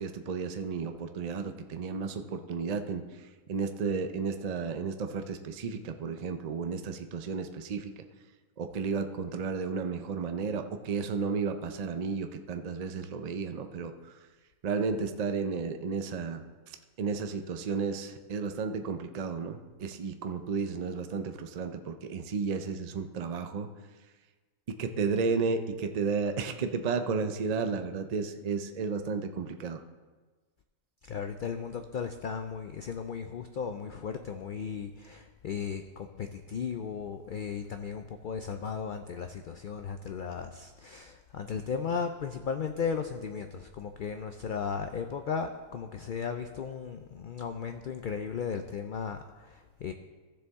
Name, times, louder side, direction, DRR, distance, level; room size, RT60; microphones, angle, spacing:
voice 1, 0.0-3.0 3.5-7.9 8.6-13.9 14.6-16.4 17.0-23.7 24.7-29.8, right 5 dB, 50° right, 7 dB, 0.5 m, -33 dB
voice 2, 31.0-49.9, left 6 dB, 75° left, 7 dB, 0.4 m, -36 dB
15.0 x 6.9 x 3.5 m, 1.3 s
omnidirectional pair, 1.4 m